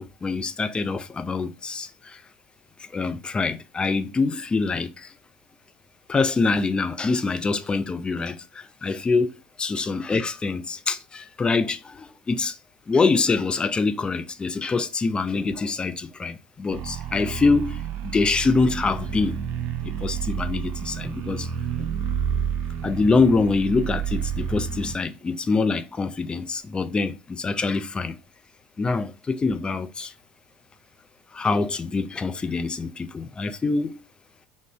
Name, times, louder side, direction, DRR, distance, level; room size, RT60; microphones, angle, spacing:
voice 1, 0.0-2.2 2.9-5.1 6.1-12.6 12.9-19.4 19.8-21.5 22.8-28.2 28.8-30.1 31.3-34.0, left 4 dB, 20° left, 0.5 m, -25 dB
sound 1, 16.7-25.0, right 8 dB, 50° right, 0.7 m, -30 dB
3.7 x 2.5 x 3.0 m
figure-of-eight pair, 65°, 4 cm